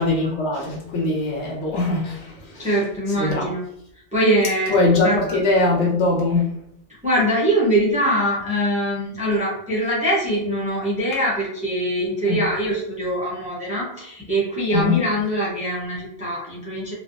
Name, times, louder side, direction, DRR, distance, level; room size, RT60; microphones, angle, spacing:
voice 1, 0.0-2.7 3.2-3.5 4.7-6.5 12.2-12.4 14.7-15.0, left 2 dB, 80° left, -3 dB, 1.0 m, -21 dB
voice 2, 2.6-3.6 4.1-4.8 5.0-5.2 7.0-16.9, equal, 10° right, -5 dB, 0.6 m, -22 dB
2.5 x 2.0 x 2.5 m, 0.72 s
omnidirectional pair, 1.2 m